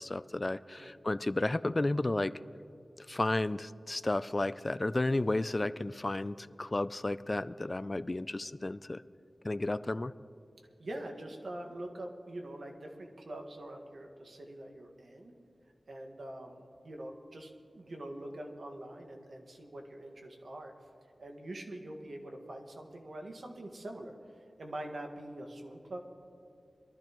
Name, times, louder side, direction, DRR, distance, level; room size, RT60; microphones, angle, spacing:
voice 1, 0.0-2.3 3.0-9.0 9.4-10.1, left 2 dB, 30° left, 15 dB, 0.3 m, -32 dB
voice 2, 10.8-15.3 15.9-20.7 21.2-26.0, right 1 dB, 75° right, 2 dB, 1.7 m, -44 dB
22.5 x 13.5 x 3.0 m, 2.5 s
wide cardioid pair, 85°, 0 cm